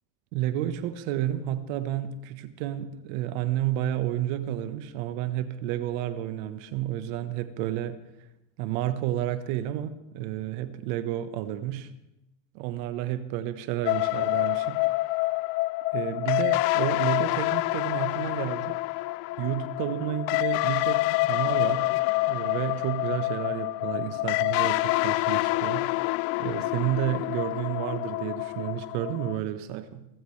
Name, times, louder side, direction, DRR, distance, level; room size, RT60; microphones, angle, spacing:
voice 1, 0.3-8.0 8.6-11.9 12.5-14.8 15.9-18.8 19.4-21.9 22.3-25.9 26.4-30.1, right 12 dB, 75° right, 10 dB, 1.4 m, -31 dB
sound 1, 13.8-29.4, left 21 dB, 75° left, 0.5 m, -27 dB
25.5 x 14.0 x 3.3 m, 0.87 s
supercardioid pair, 120°, 40 cm